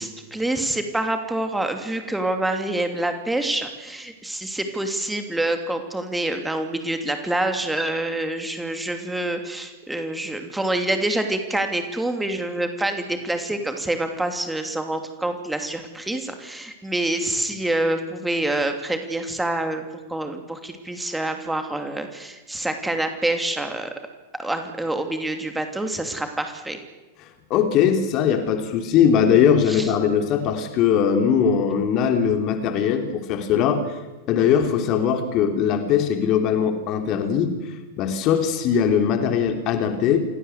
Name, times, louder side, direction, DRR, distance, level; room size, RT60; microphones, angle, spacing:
voice 1, 0.0-19.8 20.1-23.9 24.4-26.8 29.7-29.9, right 1 dB, 5° right, 6 dB, 2.8 m, -26 dB
voice 2, 27.5-33.8 34.3-37.5 38.0-40.3, left 8 dB, 40° left, 6 dB, 3.4 m, -20 dB
28.0 x 18.5 x 8.2 m, 1.2 s
figure-of-eight pair, 90°, 0 cm